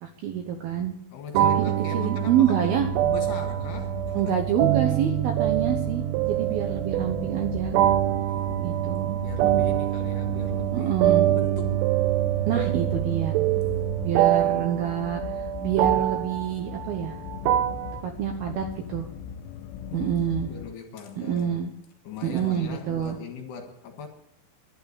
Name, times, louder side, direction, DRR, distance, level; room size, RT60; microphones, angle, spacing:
voice 1, 0.0-0.9 1.6-2.9 4.1-7.8 8.6-9.2 10.7-11.3 12.5-13.4 14.0-17.2 18.0-19.1 19.9-20.5 21.2-21.7 22.2-23.2, right 9 dB, 70° right, 2.4 m, -27 dB
voice 2, 1.1-4.4 8.3-11.9 13.4-14.0 19.9-21.6 22.1-24.1, left 6 dB, 65° left, 3.3 m, -39 dB
sound 1, 1.3-18.0, right 13 dB, 85° right, 2.4 m, -25 dB
sound 2, 2.8-20.7, left 8 dB, 85° left, 3.2 m, -39 dB
12.0 x 11.5 x 8.4 m
omnidirectional pair, 5.6 m